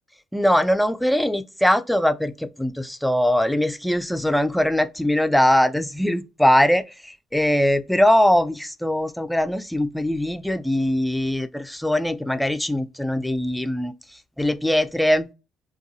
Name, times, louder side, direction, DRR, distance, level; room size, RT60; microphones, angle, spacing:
voice 1, 0.3-13.9 14.4-15.3, left 1 dB, 5° left, 0.4 m, -21 dB
2.6 x 2.3 x 3.9 m
supercardioid pair, 65°, 0 cm